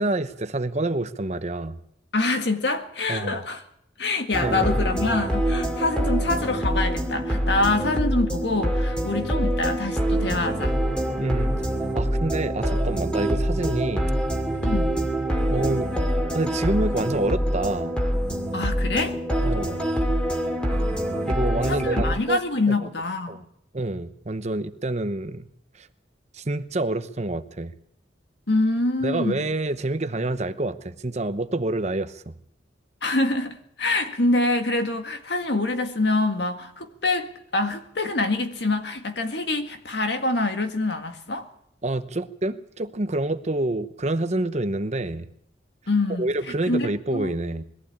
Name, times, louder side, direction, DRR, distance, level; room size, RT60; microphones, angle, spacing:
voice 1, 0.0-1.8 3.1-3.4 4.4-4.7 7.6-7.7 11.2-14.1 15.5-15.9 16.3-18.0 19.4-19.8 21.3-22.4 22.7-22.9 23.3-23.4 23.7-25.5 25.7-25.9 26.3-27.8 29.0-32.4 41.8-45.3 46.2-47.6, right 2 dB, 35° right, 0.9 m, -27 dB
voice 2, 2.1-3.6 4.0-10.8 14.6-15.0 18.5-19.2 21.7-23.4 28.5-29.5 33.0-41.5 45.9-46.3 46.7-47.3, left 2 dB, 65° left, 1.9 m, -25 dB
sound 1, 4.3-22.2, equal, 5° left, 2.4 m, -25 dB
21.5 x 14.5 x 8.6 m
head